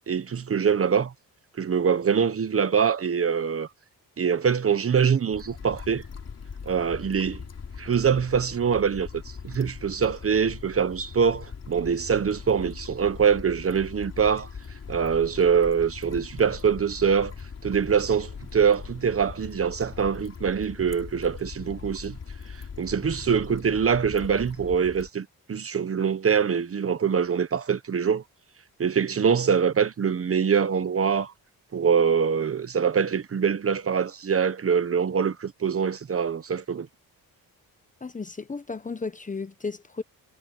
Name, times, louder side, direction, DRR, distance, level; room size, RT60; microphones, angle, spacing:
voice 1, 0.1-1.1 1.6-3.7 4.2-6.0 6.6-7.4 7.8-14.5 14.9-17.3 17.6-22.2 22.5-28.2 28.8-31.3 31.7-36.9, right 7 dB, 40° right, 1.1 m, -24 dB
sound 1, 5.3-25.1, left 6 dB, 45° left, 4.4 m, -41 dB
voice 2, 38.0-40.0, left 4 dB, 20° left, 1.0 m, -34 dB
cardioid pair, 110°, 36 cm